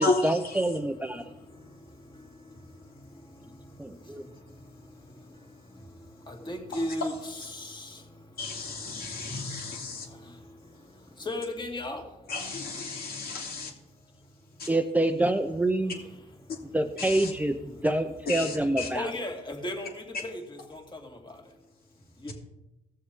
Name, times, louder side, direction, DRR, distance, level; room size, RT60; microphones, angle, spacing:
voice 1, 0.0-1.3 3.8-4.3 14.7-16.0 16.7-19.1, right 1 dB, 10° right, 7 dB, 0.6 m, -27 dB
voice 2, 6.3-8.0 11.2-12.0 18.9-20.4 20.7-21.0 22.2-22.3, left 1 dB, 25° left, 2 dB, 2.2 m, -35 dB
voice 3, 8.4-10.0 12.3-13.7 14.6-14.7 17.0-17.1 18.3-18.5 18.8-18.9, left 3 dB, 65° left, 0 dB, 2.5 m, -31 dB
16.0 x 7.0 x 3.7 m, 0.92 s
cardioid pair, 85°, 17 cm